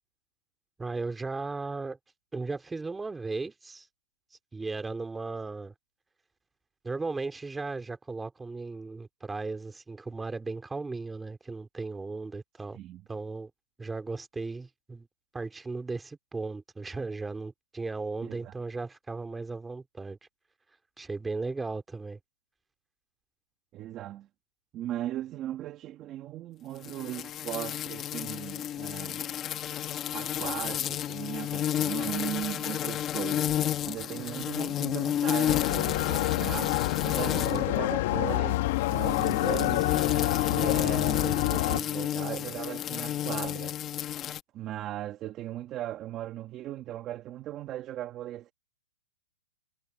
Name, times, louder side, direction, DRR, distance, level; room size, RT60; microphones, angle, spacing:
voice 1, 0.8-2.0 2.3-3.9 4.5-5.7 6.8-12.8 13.1-13.5 13.8-15.1 15.3-20.2 21.0-22.2, right 3 dB, 5° right, 2.6 m, -36 dB
voice 2, 18.2-18.5 23.7-24.3 24.7-29.2 30.1-33.5 33.8-39.9 40.5-43.8 44.5-48.5, right 13 dB, 25° right, 1.6 m, -38 dB
sound 1, 26.8-37.7 38.7-44.4, left 11 dB, 20° left, 1.3 m, -31 dB
sound 2, 35.5-41.8, left 17 dB, 45° left, 1.2 m, -27 dB
hypercardioid pair, 155°, 0 cm